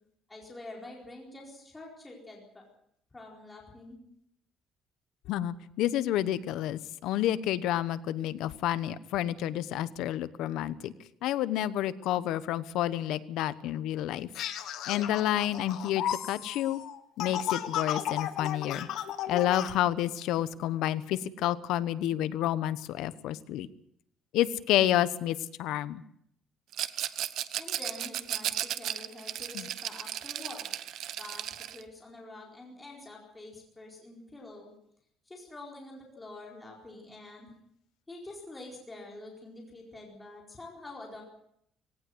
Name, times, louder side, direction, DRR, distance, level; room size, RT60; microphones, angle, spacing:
voice 1, 0.3-2.6 3.1-4.0 27.5-30.7 31.1-34.7 35.3-37.5 38.1-41.2, left 2 dB, 10° left, -1 dB, 4.4 m, -46 dB
voice 2, 5.3-10.9 11.2-14.3 14.9-16.8 17.2-18.9 19.3-23.7 24.3-26.0 29.5-29.6, left 12 dB, 85° left, 15 dB, 1.1 m, -29 dB
sound 1, 14.3-19.7, left 10 dB, 70° left, 1.6 m, -34 dB
Rattle, 26.7-31.8, right 11 dB, 60° right, 1.0 m, -35 dB
19.0 x 18.0 x 7.9 m, 0.70 s
cardioid pair, 175°, 0 cm